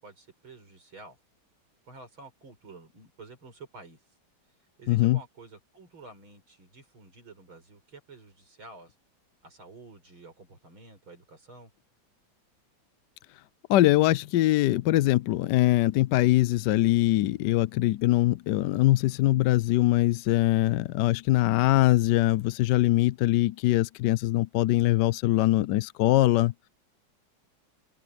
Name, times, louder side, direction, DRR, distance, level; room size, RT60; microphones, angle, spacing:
voice 1, 0.0-1.2 1.9-4.0 4.8-9.0 9.4-11.7, right 3 dB, 90° right, 7.0 m, -50 dB
voice 2, 4.9-5.2 13.7-26.5, left 16 dB, 70° left, 1.1 m, -22 dB
open air
omnidirectional pair, 2.2 m